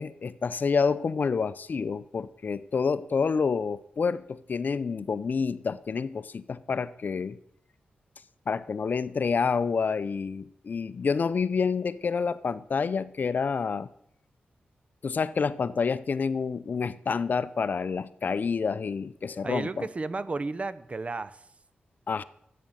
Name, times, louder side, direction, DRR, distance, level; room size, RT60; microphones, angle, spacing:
voice 1, 0.0-7.4 8.5-13.9 15.0-19.9 22.1-22.2, left 5 dB, 55° left, 0.6 m, -28 dB
voice 2, 19.4-21.4, right 3 dB, 35° right, 0.7 m, -33 dB
13.0 x 8.6 x 7.8 m
cardioid pair, 80°, 4 cm